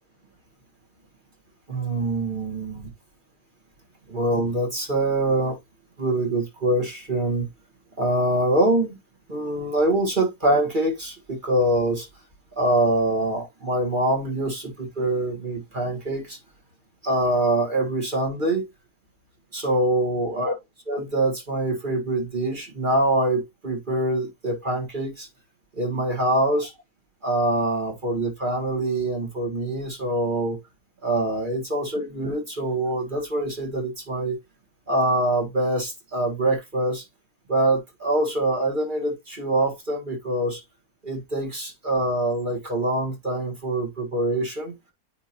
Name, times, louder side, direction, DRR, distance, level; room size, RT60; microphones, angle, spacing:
voice 1, 1.7-2.9 4.1-5.6 6.0-7.5 8.0-9.0 9.3-12.1 12.6-16.4 17.0-18.7 19.5-20.5 20.9-25.3 25.8-26.7 27.2-30.6 31.0-34.4 34.9-37.0 37.5-40.6 41.0-44.7, right 1 dB, 30° right, 1.8 m, -24 dB
9.3 x 3.9 x 2.9 m
omnidirectional pair, 1.7 m